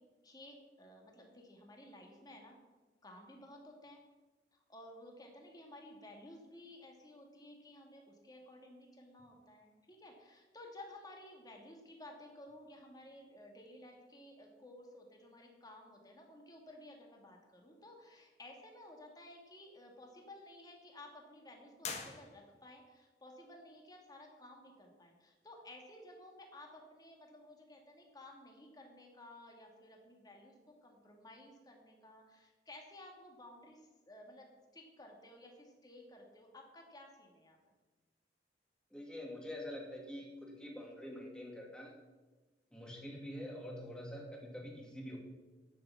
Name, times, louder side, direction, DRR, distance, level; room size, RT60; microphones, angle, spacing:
voice 1, 0.2-2.6 3.0-4.0 4.5-30.5 30.8-34.5 34.7-37.6 42.7-42.8, left 1 dB, 20° left, 1 dB, 2.1 m, -55 dB
sound 1, 21.8-22.8, left 5 dB, 40° left, 1.4 m, -45 dB
voice 2, 38.9-41.9 42.7-45.2, left 1 dB, 5° left, -1 dB, 2.2 m, -46 dB
10.5 x 6.9 x 7.4 m, 1.2 s
head